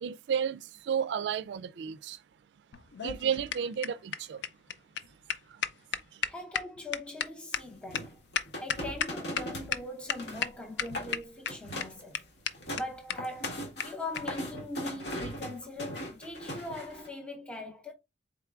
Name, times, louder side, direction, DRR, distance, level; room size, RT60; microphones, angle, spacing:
voice 1, 0.0-0.6 0.9-2.2 3.0-4.4, right 8 dB, 80° right, 0.3 m, -32 dB
sound 1, 2.7-9.4 9.7-9.8 10.1-10.5 10.8-11.5 11.8-11.9 12.1-12.2 12.5-12.6 12.8-12.9 13.1-13.2 13.4-13.5 13.8-13.9 14.2-14.3 15.1-15.2, left 8 dB, 85° left, 0.4 m, -33 dB
voice 2, 6.3-12.2 12.7-17.9, left 2 dB, 5° left, 0.6 m, -41 dB
sound 2, 7.9-9.7 10.0-10.5 10.8-11.2 11.5-12.0 12.4-17.1, equal, 70° left, 1.5 m, -39 dB
4.5 x 3.8 x 2.4 m
head